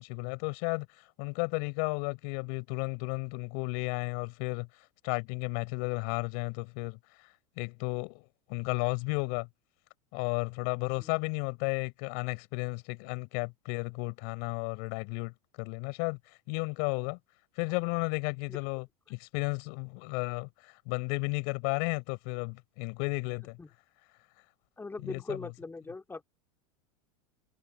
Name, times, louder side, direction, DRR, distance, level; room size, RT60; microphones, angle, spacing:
voice 1, 0.0-4.7 5.0-7.0 7.6-8.2 8.5-9.5 10.1-16.2 16.5-17.2 17.6-23.6 25.0-25.5, left 36 dB, 60° left, 6.0 m, -33 dB
voice 2, 24.8-26.2, left 3 dB, 10° left, 2.4 m, -40 dB
hypercardioid pair, 110°, 19 cm